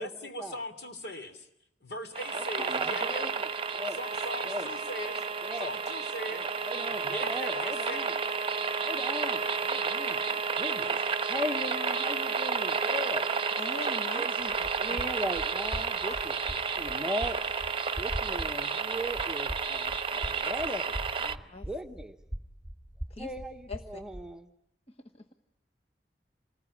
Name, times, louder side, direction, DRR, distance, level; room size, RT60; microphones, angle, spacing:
voice 1, 0.0-1.5 1.8-3.3 3.9-5.2 5.5-6.4 6.7-8.0, left 1 dB, 65° left, 8 dB, 3.1 m, -40 dB
sound 1, 2.1-21.3, right 5 dB, 30° right, 1.0 m, -31 dB
voice 2, 2.3-3.3 3.7-4.0 4.5-4.7 5.5-5.7 6.3-8.1 8.8-11.0 11.3-13.3 14.1-16.1 16.8-17.4 18.0-21.0 21.2-21.4 21.7-22.2 23.2-23.6 23.9-24.4, equal, 5° right, 6 dB, 1.0 m, -38 dB
voice 3, 13.6-14.3 14.9-15.0 16.0-16.2 21.5-21.7 23.1-23.3 23.7-24.0 24.9-25.3, left 2 dB, 35° left, 3 dB, 1.3 m, -42 dB
sound 2, 14.4-24.3, right 1 dB, 20° left, 2.8 m, -42 dB
28.0 x 20.5 x 10.0 m, 0.84 s
head